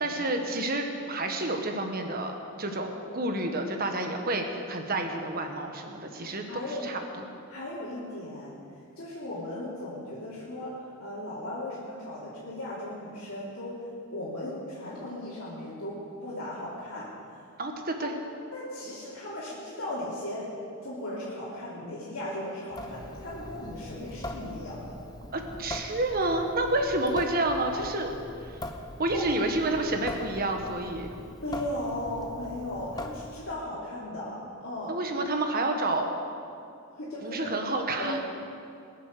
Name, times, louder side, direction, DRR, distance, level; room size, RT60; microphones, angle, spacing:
voice 1, 0.0-7.3 17.6-18.1 25.3-28.1 28.4-28.6 29.0-31.1 34.9-36.1 37.2-38.2, right 2 dB, 40° right, 4 dB, 1.5 m, -29 dB
voice 2, 6.2-6.9 7.5-8.6 9.0-17.1 18.0-18.1 18.5-20.6 20.8-25.0 29.1-29.5 31.4-35.0 36.9-37.6 38.0-38.2, left 1 dB, 70° left, -9 dB, 2.9 m, -37 dB
Water tap faucet / Sink (filling or washing) / Drip, 22.7-33.6, left 1 dB, 15° left, 0.9 m, -41 dB
21.5 x 7.5 x 6.8 m, 2.5 s
head